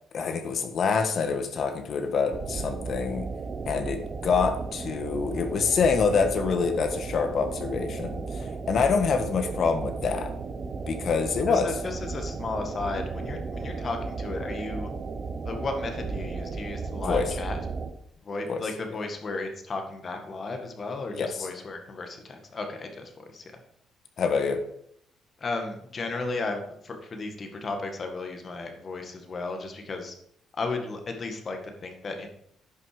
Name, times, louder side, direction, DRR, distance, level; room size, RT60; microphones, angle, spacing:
voice 1, 0.1-3.3 3.7-10.3 10.9-11.7 17.0-17.2 18.5-18.6 21.1-21.5 24.2-24.6, left 5 dB, 60° left, 7 dB, 1.5 m, -26 dB
sound 1, 2.3-17.9, right 4 dB, 45° right, 1.1 m, -35 dB
voice 2, 11.5-14.9 15.4-17.6 18.2-23.5 25.4-30.2 30.5-32.3, left 3 dB, 45° left, 4 dB, 2.0 m, -34 dB
10.5 x 6.2 x 5.1 m, 0.68 s
cardioid pair, 90°, 0 cm